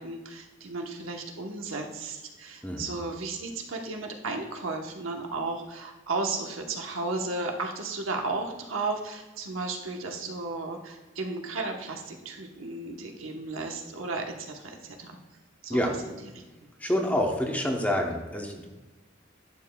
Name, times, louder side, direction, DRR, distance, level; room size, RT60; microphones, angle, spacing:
voice 1, 0.0-15.2 15.6-15.9, right 3 dB, 80° right, 2 dB, 1.0 m, -34 dB
voice 2, 16.8-18.7, left 1 dB, 10° left, 1 dB, 0.8 m, -27 dB
11.0 x 6.9 x 2.3 m, 1.2 s
head